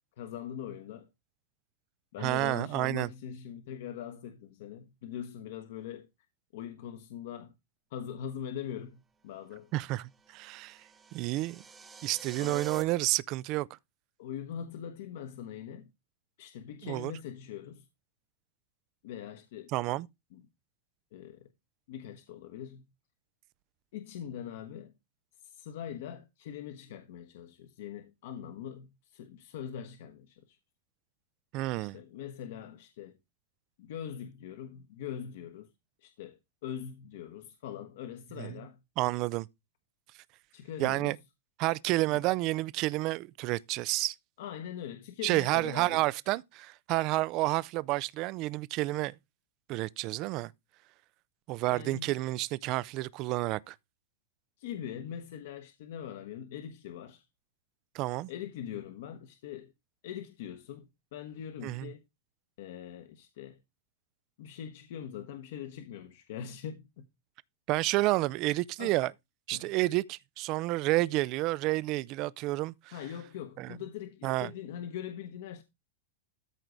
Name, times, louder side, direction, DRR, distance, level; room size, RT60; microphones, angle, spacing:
voice 1, 0.2-1.1 2.1-6.1 6.5-7.5 7.9-9.7 12.4-12.7 14.2-15.9 16.4-17.9 19.0-19.7 20.3-20.4 21.1-21.5 21.9-22.8 23.9-24.9 25.4-30.6 31.8-33.2 33.8-35.7 36.0-38.8 40.5-41.2 42.1-42.2 44.4-46.0 51.7-52.1 54.6-57.2 58.3-59.7 60.0-62.0 62.6-63.6 64.4-67.0 68.8-69.0 69.5-69.7 72.9-75.6, left 9 dB, 55° left, 1.2 m, -42 dB
voice 2, 2.2-3.1 9.7-10.0 10.3-10.8 11.1-11.6 12.0-13.7 16.8-17.1 19.7-20.1 31.5-32.0 38.4-38.5 39.0-39.5 40.8-41.2 41.6-44.1 45.2-49.1 49.7-50.5 51.5-53.7 57.9-58.3 61.6-61.9 67.7-69.1 69.5-72.7 73.6-73.7 74.2-74.5, right 19 dB, 30° right, 0.4 m, -30 dB
sound 1, 10.3-12.8, right 5 dB, 10° right, 0.9 m, -47 dB
13.5 x 4.7 x 4.0 m
supercardioid pair, 170°, 0 cm